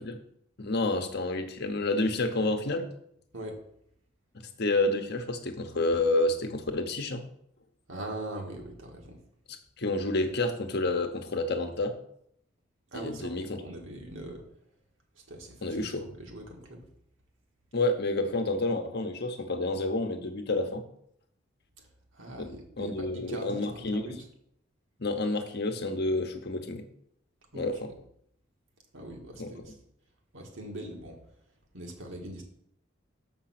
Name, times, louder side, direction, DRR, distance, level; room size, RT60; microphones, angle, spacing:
voice 1, 0.6-2.9 4.3-7.2 9.8-12.0 12.9-13.6 15.6-16.1 17.7-20.8 22.4-24.2 25.0-26.8 27.5-27.9 29.4-29.5, left 2 dB, 55° left, 6 dB, 1.0 m, -29 dB
voice 2, 7.9-9.2 12.9-14.5 15.2-16.8 22.1-24.3 27.5-27.9 28.9-29.7 30.3-31.2 31.7-32.4, right 1 dB, 80° right, 1 dB, 1.9 m, -41 dB
6.7 x 5.5 x 5.9 m, 0.71 s
head